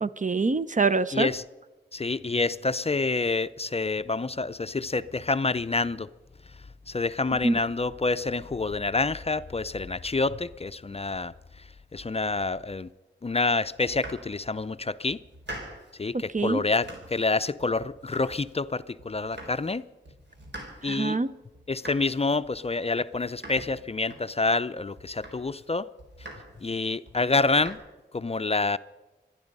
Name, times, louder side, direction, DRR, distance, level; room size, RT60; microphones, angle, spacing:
voice 1, 0.0-1.3 7.4-7.5 16.3-16.6 20.8-21.3, right 4 dB, 40° right, 0.7 m, -25 dB
voice 2, 1.1-1.4 1.9-6.1 6.9-11.3 11.9-12.9 13.2-15.2 16.0-19.8 20.8-21.2 21.7-25.9 26.6-27.8 28.1-28.8, left 3 dB, 35° left, 0.5 m, -27 dB
Domestic sounds home sounds, 13.7-14.7 15.1-16.0 16.4-17.3 17.6-18.7 19.0-19.8 20.0-24.6 25.0-25.7 26.0-26.7 27.1-27.7, right 1 dB, 70° right, 4.3 m, -45 dB
25.5 x 10.5 x 5.3 m
wide cardioid pair, 60°, 19 cm